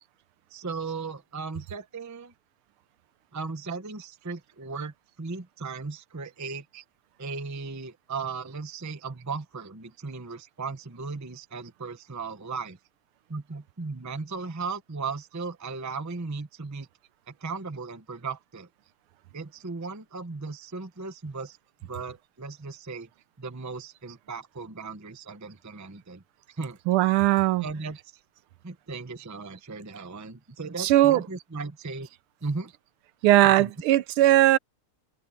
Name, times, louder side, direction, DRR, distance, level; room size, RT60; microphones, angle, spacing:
voice 1, 0.5-2.3 3.3-6.7 7.2-12.8 13.3-16.9 17.3-18.7 19.3-23.1 23.4-26.8 27.6-28.0 28.6-32.1 32.4-32.7 33.4-33.7, right 4 dB, 20° right, 0.4 m, -36 dB
voice 2, 26.9-27.6 30.8-31.2 33.2-34.6, right 15 dB, 90° right, 1.5 m, -19 dB
omnidirectional pair, 2.4 m